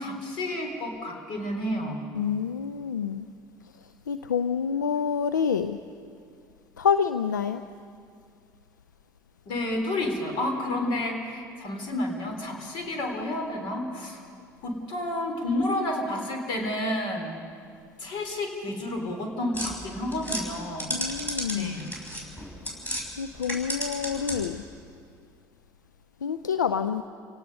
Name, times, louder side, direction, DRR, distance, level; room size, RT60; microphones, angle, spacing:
voice 1, 0.0-2.0 9.5-14.2 14.6-17.4 18.0-21.0 21.5-21.9 24.1-24.2, left 1 dB, 60° left, 3.6 m, -30 dB
voice 2, 2.1-3.3 4.1-5.8 6.8-7.6 20.9-21.9 22.7-22.8 23.2-24.6 26.2-27.0, left 7 dB, 85° left, 0.4 m, -27 dB
sound 1, 19.5-23.1 23.4-24.6, equal, 15° left, 6.0 m, -33 dB
29.0 x 18.0 x 5.4 m
hypercardioid pair, 60°, 10 cm